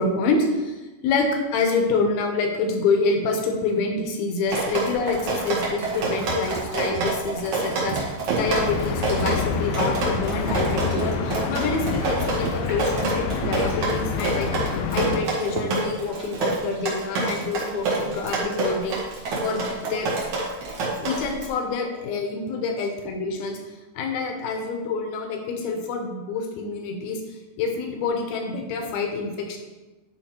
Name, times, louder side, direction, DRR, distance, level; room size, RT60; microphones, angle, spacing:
voice 1, 0.0-20.1 21.0-29.6, left 4 dB, 75° left, 3 dB, 2.5 m, -27 dB
Drip, 4.5-21.5, right 3 dB, 60° right, 1.7 m, -27 dB
sound 1, 4.9-15.6, right 6 dB, 80° right, 2.5 m, -37 dB
sound 2, 8.4-15.2, left 6 dB, 90° left, 2.1 m, -27 dB
10.5 x 3.8 x 4.3 m, 1.2 s
omnidirectional pair, 5.0 m